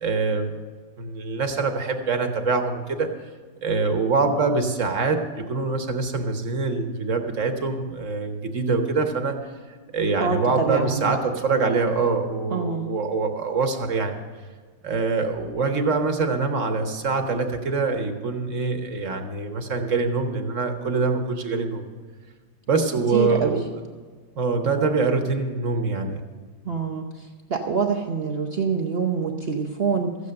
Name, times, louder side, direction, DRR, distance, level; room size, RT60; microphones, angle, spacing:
voice 1, 0.0-0.5 1.0-3.1 3.6-9.4 9.9-14.2 14.8-21.8 22.7-23.6 24.4-26.2, right 4 dB, 50° right, 5 dB, 1.1 m, -24 dB
voice 2, 10.2-11.2 12.5-12.9 23.1-23.6 26.7-27.1 27.5-30.2, right 5 dB, 75° right, 2 dB, 0.5 m, -25 dB
14.0 x 8.2 x 6.4 m, 1.5 s
omnidirectional pair, 2.1 m